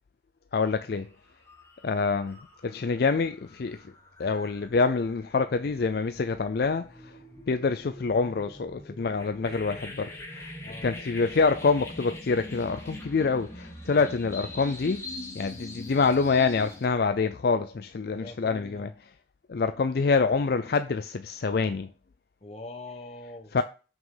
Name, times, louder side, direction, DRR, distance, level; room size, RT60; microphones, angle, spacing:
voice 1, 0.5-1.1 1.8-3.8 4.2-7.1 7.5-10.6 10.8-15.1 15.3-18.9 19.5-21.9 23.5-23.6, left 4 dB, 60° left, 0.4 m, -26 dB
sound 1, 0.8-1.0 1.4-16.9, left 1 dB, 15° left, 1.5 m, -44 dB
voice 2, 18.1-18.9 22.4-23.5, left 2 dB, 35° left, 1.2 m, -43 dB
7.3 x 5.9 x 3.9 m
head